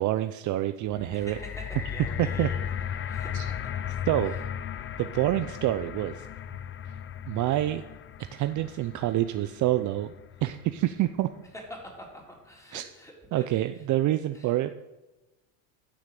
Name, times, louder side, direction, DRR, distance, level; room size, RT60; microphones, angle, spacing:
voice 1, 0.0-1.4 2.2-2.5 3.3-3.5 4.1-4.3 5.0-6.3 7.3-7.8 8.2-10.1 10.4-11.3 12.7-12.9 13.3-14.7, right 14 dB, 45° right, 10 dB, 0.6 m, -27 dB
sound 1, 0.8-11.1 11.8-11.9, left 9 dB, 30° left, 0.6 m, -36 dB
voice 2, 1.1-2.6 3.1-3.3 11.7-13.5 14.3-14.5, equal, 5° left, 0 dB, 3.6 m, -45 dB
12.0 x 6.3 x 7.7 m, 1.1 s
supercardioid pair, 110°, 43 cm